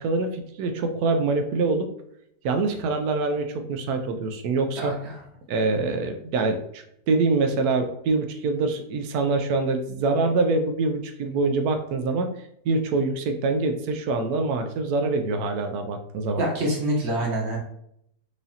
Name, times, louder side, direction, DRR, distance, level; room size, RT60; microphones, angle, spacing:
voice 1, 0.0-1.9 2.4-5.0 5.5-12.3 12.6-16.4, right 3 dB, 70° right, 6 dB, 1.0 m, -25 dB
voice 2, 4.8-5.2 16.4-17.6, right 1 dB, 45° right, -2 dB, 1.1 m, -26 dB
4.8 x 2.6 x 2.7 m, 0.73 s
omnidirectional pair, 1.8 m